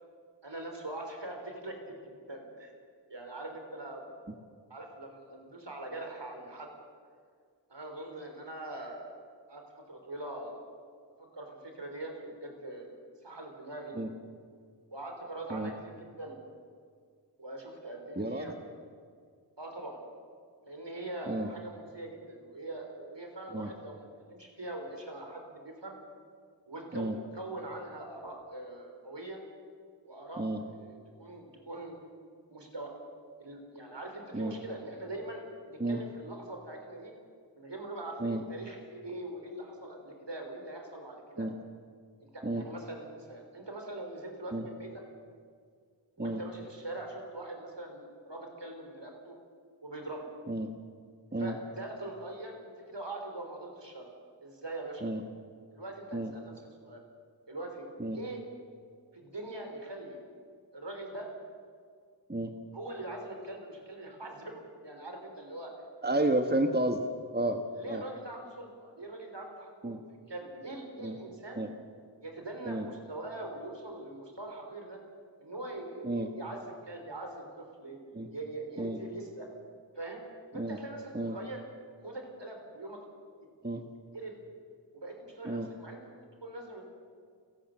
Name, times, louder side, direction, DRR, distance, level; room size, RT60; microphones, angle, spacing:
voice 1, 0.4-2.7 3.1-4.1 4.7-6.7 7.7-9.1 9.5-9.6 9.9-10.6 11.2-12.9 13.2-14.1 14.9-16.4 17.4-18.6 19.6-20.0 20.7-26.0 26.7-29.4 30.0-30.5 30.7-31.9 32.5-32.9 33.4-37.1 37.5-41.5 42.2-45.0 46.2-49.4 49.8-50.3 51.4-54.1 54.4-55.1 55.7-56.5 56.8-57.0 57.5-57.9 58.1-58.4 59.1-60.2 60.7-61.3 62.7-65.7 67.7-70.0 70.3-71.6 72.2-75.0 75.4-78.0 78.3-79.5 80.0-80.2 80.5-81.6 82.0-83.0 84.1-84.4 84.9-86.0 86.4-86.8, right 2 dB, 70° right, 3 dB, 4.1 m, -42 dB
voice 2, 18.2-18.5 21.3-21.5 23.5-23.7 26.9-27.2 30.4-30.6 34.3-34.5 35.8-36.0 38.2-38.4 41.4-41.5 42.4-42.6 44.5-44.7 46.2-46.4 50.5-50.7 51.3-51.6 55.0-55.2 56.1-56.3 58.0-58.2 62.3-62.5 66.0-67.0 67.3-68.0 69.8-70.0 71.0-71.1 71.6-71.7 72.6-72.8 76.0-76.3 78.1-78.3 78.8-79.0 80.5-80.8 81.1-81.4 83.6-83.8 85.4-85.7, right 1 dB, 20° right, 6 dB, 1.3 m, -31 dB
29.5 x 11.5 x 7.8 m, 2.1 s
wide cardioid pair, 40°, 44 cm